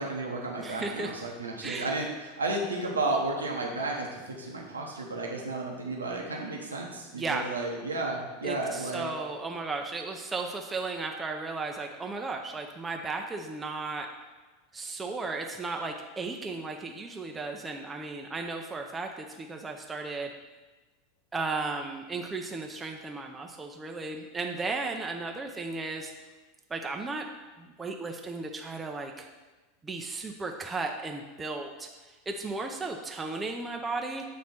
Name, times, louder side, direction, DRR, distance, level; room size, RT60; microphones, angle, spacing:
voice 1, 0.0-9.1, right 2 dB, 80° right, -1 dB, 0.8 m, -33 dB
voice 2, 0.6-1.1 1.6-1.9 7.1-7.4 8.4-14.1 14.7-20.3 21.3-26.1 26.7-27.3 27.6-29.3 29.8-34.2, right 3 dB, 15° right, 2 dB, 0.5 m, -35 dB
7.9 x 3.1 x 4.3 m, 1.2 s
figure-of-eight pair, 85°, 0 cm